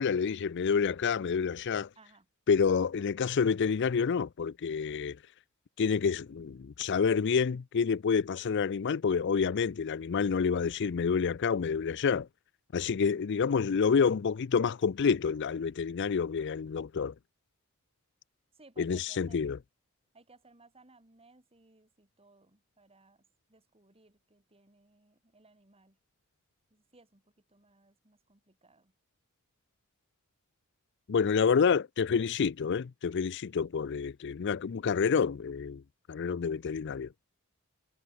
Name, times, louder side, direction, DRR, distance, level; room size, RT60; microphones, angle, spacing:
voice 1, 0.0-1.9 2.5-5.2 5.8-12.3 12.7-17.1 18.8-19.6 31.1-35.8 36.1-37.1, left 6 dB, 55° left, 0.4 m, -28 dB
voice 2, 1.9-2.3 18.5-19.4 20.1-26.0 26.7-27.2 27.5-28.9, right 3 dB, 30° right, 3.3 m, -61 dB
head